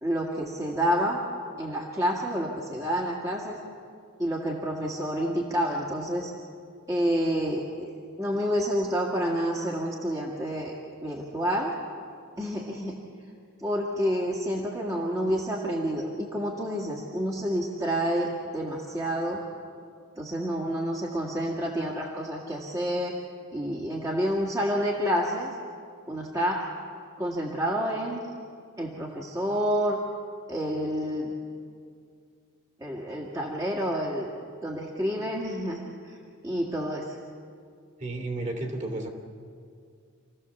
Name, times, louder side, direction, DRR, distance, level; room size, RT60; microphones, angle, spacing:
voice 1, 0.0-1.2 1.6-3.6 4.2-6.3 6.9-7.9 8.2-10.7 11.0-11.7 12.4-13.0 13.6-19.4 20.2-23.2 23.5-25.5 26.1-26.6 27.2-28.2 28.8-30.0 30.5-31.3 32.8-34.3 34.6-36.2 36.4-37.2, equal, 15° right, -3 dB, 1.9 m, -29 dB
voice 2, 38.0-39.1, right 2 dB, 35° right, 2 dB, 2.7 m, -32 dB
28.5 x 15.5 x 7.1 m, 2.2 s
head